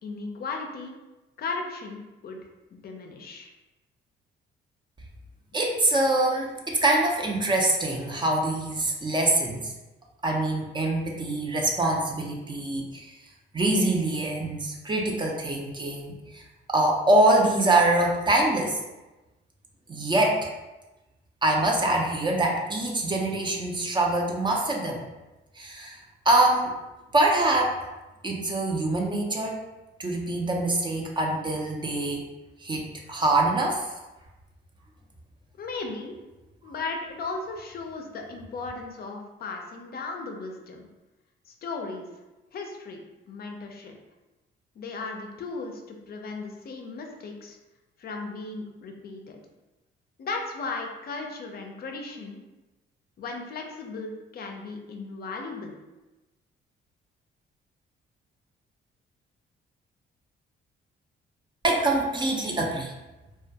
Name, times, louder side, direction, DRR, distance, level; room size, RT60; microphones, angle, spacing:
voice 1, 0.0-0.9 1.4-2.4 2.7-3.5 35.6-36.2 36.6-40.9 41.5-42.1 42.5-44.0 44.8-47.6 48.0-49.4 50.2-52.4 53.2-55.7, left 3 dB, 50° left, 3 dB, 0.4 m, -36 dB
voice 2, 5.5-9.7 10.2-13.1 13.5-16.4 16.7-18.8 19.9-20.5 21.4-25.0 25.6-26.0 26.3-26.8 27.1-27.8 28.2-29.6 30.0-32.3 32.6-33.9 61.6-62.9, right 2 dB, 25° right, 0 dB, 0.4 m, -24 dB
2.2 x 2.1 x 2.7 m, 1.1 s
cardioid pair, 90°, 20 cm